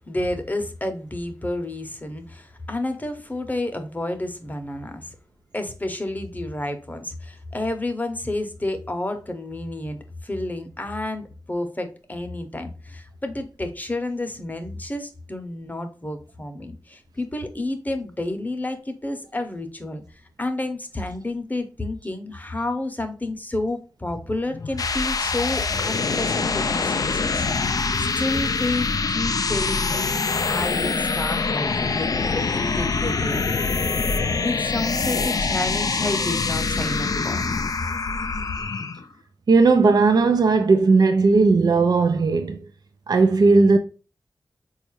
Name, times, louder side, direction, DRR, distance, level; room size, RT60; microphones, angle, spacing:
voice 1, 0.1-5.2 5.5-27.5 28.0-30.2 30.5-34.1 34.4-37.4, left 2 dB, 25° left, 0.7 m, -30 dB
sound 1, 24.5-39.0, left 4 dB, 55° left, 0.3 m, -24 dB
voice 2, 39.5-42.7 43.1-43.8, right 3 dB, 65° right, 0.4 m, -17 dB
4.1 x 2.4 x 3.1 m
cardioid pair, 40°, 7 cm